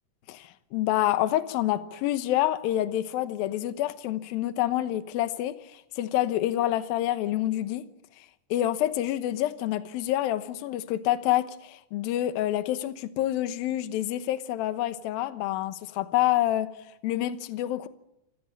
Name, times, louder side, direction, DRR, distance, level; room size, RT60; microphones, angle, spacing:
voice 1, 0.3-7.8 8.5-16.7 17.0-17.9, left 13 dB, 70° left, 12 dB, 2.6 m, -27 dB
26.0 x 15.5 x 8.8 m, 0.84 s
omnidirectional pair, 4.8 m